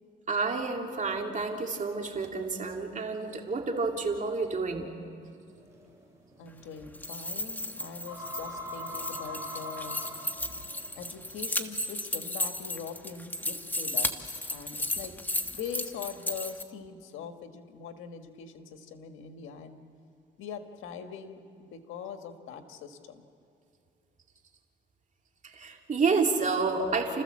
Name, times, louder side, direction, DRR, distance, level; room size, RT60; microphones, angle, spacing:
voice 1, 0.3-4.9 25.6-27.2, right 4 dB, 40° right, 2 dB, 2.8 m, -29 dB
sound 1, 5.5-11.6, left 1 dB, 15° right, 6.8 m, -42 dB
voice 2, 6.4-10.0 11.0-15.1 15.5-19.8 20.4-23.3, left 6 dB, 90° left, 7 dB, 1.5 m, -42 dB
sound 2, 6.8-16.6, left 1 dB, 10° left, 1.3 m, -34 dB
30.0 x 14.5 x 7.5 m, 2.5 s
cardioid pair, 90°, 20 cm